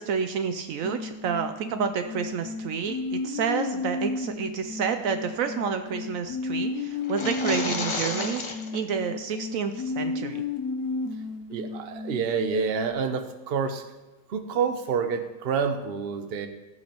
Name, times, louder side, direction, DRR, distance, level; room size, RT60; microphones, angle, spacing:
voice 1, 0.0-10.4, right 6 dB, 70° right, 8 dB, 0.9 m, -29 dB
sound 1, 0.8-12.9, left 4 dB, 85° left, 1.2 m, -33 dB
sound 2, 7.0-8.8, left 3 dB, 35° left, 0.5 m, -31 dB
voice 2, 11.5-13.8 14.3-16.5, right 6 dB, 50° right, 8 dB, 0.8 m, -28 dB
13.5 x 8.3 x 3.0 m, 1.1 s
omnidirectional pair, 1.5 m